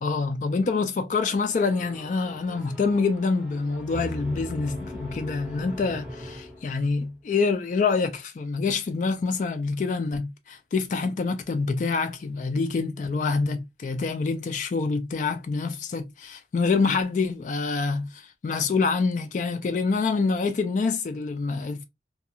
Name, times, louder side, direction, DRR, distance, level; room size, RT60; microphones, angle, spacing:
voice 1, 0.0-21.8, left 4 dB, 45° left, 0.3 m, -26 dB
sound 1, 1.5-7.1, left 1 dB, 5° right, 0.6 m, -40 dB
2.4 x 2.3 x 2.7 m
head